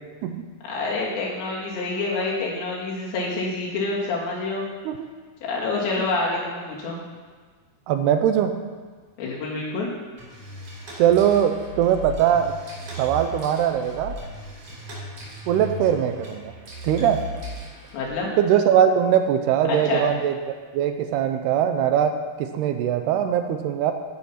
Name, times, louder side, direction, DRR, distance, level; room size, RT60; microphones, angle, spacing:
voice 1, 0.7-4.6 5.5-7.0 9.2-9.9 17.9-18.3 19.8-20.0, left 3 dB, 85° left, -4 dB, 4.7 m, -27 dB
voice 2, 7.9-8.6 11.0-12.6 13.0-14.2 15.5-16.5 16.8-17.2 18.4-20.4 20.7-23.9, right 9 dB, 80° right, 7 dB, 2.6 m, -21 dB
sound 1, 10.2-18.2, right 1 dB, 40° right, 4.6 m, -37 dB
15.0 x 7.6 x 5.7 m, 1.5 s
omnidirectional pair, 4.9 m